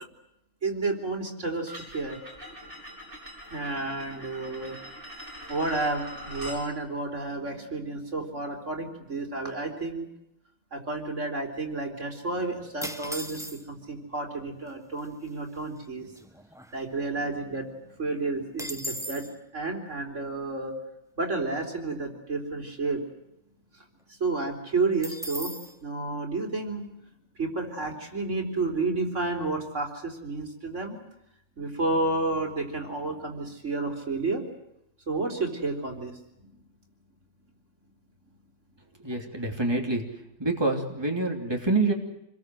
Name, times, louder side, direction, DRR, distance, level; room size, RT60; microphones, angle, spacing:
voice 1, 0.6-2.2 3.5-4.8 5.5-10.1 10.7-16.1 16.7-17.7 18.0-20.8 21.2-23.0 24.1-25.5 25.8-26.8 27.4-31.0 31.6-34.4 35.1-36.1 36.4-36.5, right 3 dB, 75° right, 3 dB, 4.3 m, -31 dB
sound 1, 1.7-6.6, equal, 45° right, 7.0 m, -43 dB
sound 2, 12.8-13.9 14.7-14.8 15.0-15.3 15.8-17.2 17.6-17.7 17.9-19.3 25.0-25.7, equal, 5° right, 1.0 m, -38 dB
voice 2, 39.0-40.0 40.4-41.9, right 2 dB, 20° right, 1 dB, 3.2 m, -26 dB
27.5 x 21.5 x 7.9 m, 0.85 s
omnidirectional pair, 1.3 m